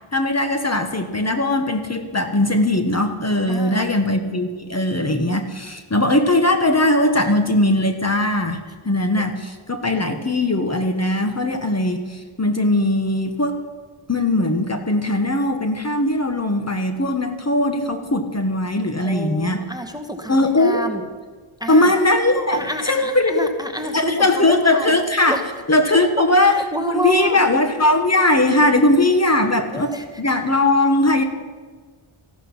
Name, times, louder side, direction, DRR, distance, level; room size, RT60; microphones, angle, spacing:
voice 1, 0.1-13.6 14.1-19.7 20.3-20.9 21.7-23.5 23.8-25.4 25.7-31.2, left 1 dB, 30° left, 6 dB, 1.3 m, -19 dB
voice 2, 3.5-3.9 19.0-21.0 21.6-21.9 22.5-24.9 25.3-25.4 26.5-27.4 29.5-30.0, right 1 dB, 10° right, 5 dB, 1.2 m, -28 dB
15.0 x 12.0 x 5.6 m, 1.5 s
wide cardioid pair, 75°, 50 cm